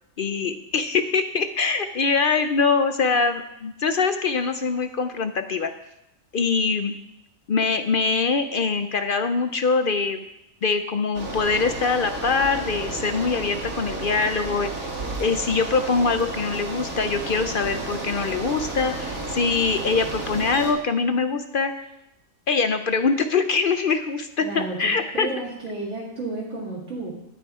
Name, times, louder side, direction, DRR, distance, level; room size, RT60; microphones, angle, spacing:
voice 1, 0.2-5.7 6.3-6.9 7.5-10.2 10.6-14.7 15.2-21.7 22.5-25.3, left 4 dB, 55° left, 9 dB, 0.7 m, -23 dB
Bicycle, 11.1-20.7, right 2 dB, 85° right, 2.3 m, -32 dB
voice 2, 24.4-27.1, right 2 dB, 65° right, -6 dB, 2.2 m, -32 dB
11.5 x 9.0 x 4.8 m, 0.86 s
omnidirectional pair, 1.4 m